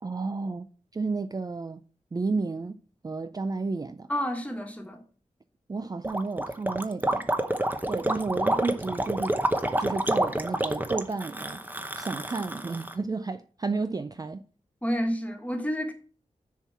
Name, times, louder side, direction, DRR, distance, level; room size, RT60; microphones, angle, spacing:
voice 1, 0.0-0.7 0.9-1.8 2.1-4.1 5.7-7.3 7.9-9.4 9.8-11.6 11.9-14.4, right 3 dB, 30° right, 0.4 m, -32 dB
voice 2, 4.1-5.0 14.8-15.9, equal, 10° left, 1.5 m, -29 dB
Gurgling, 6.0-12.9, right 1 dB, 15° right, 0.8 m, -28 dB
6.9 x 4.6 x 5.7 m
wide cardioid pair, 85°, 13 cm